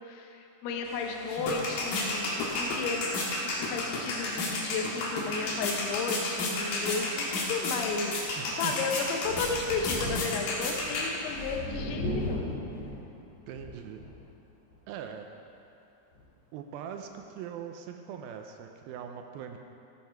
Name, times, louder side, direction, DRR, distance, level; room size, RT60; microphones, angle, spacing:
voice 1, 0.0-12.5, left 4 dB, 80° left, 3 dB, 2.9 m, -34 dB
sound 1, 0.9-11.6, left 2 dB, 65° left, 3.2 m, -32 dB
voice 2, 8.4-8.8 13.5-14.0 14.9-15.3 16.5-19.6, right 8 dB, 80° right, 5 dB, 2.3 m, -41 dB
Thunder, 9.2-14.3 14.7-14.8 16.1-16.2, left 1 dB, 45° left, 2.7 m, -37 dB
16.0 x 7.6 x 4.6 m, 2.9 s
omnidirectional pair, 4.7 m